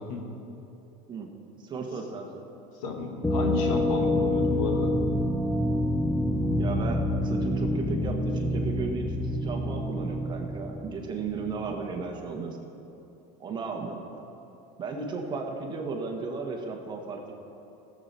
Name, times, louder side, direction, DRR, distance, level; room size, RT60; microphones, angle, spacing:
voice 1, 1.5-2.4 6.6-12.6 13.4-14.2 14.8-17.3, right 4 dB, 25° right, 1 dB, 1.4 m, -35 dB
voice 2, 2.8-4.9, left 3 dB, 85° left, 2 dB, 1.8 m, -32 dB
sound 1, 3.2-11.9, left 1 dB, 5° left, 0.5 m, -27 dB
17.0 x 7.5 x 4.3 m, 2.9 s
supercardioid pair, 135°, 17 cm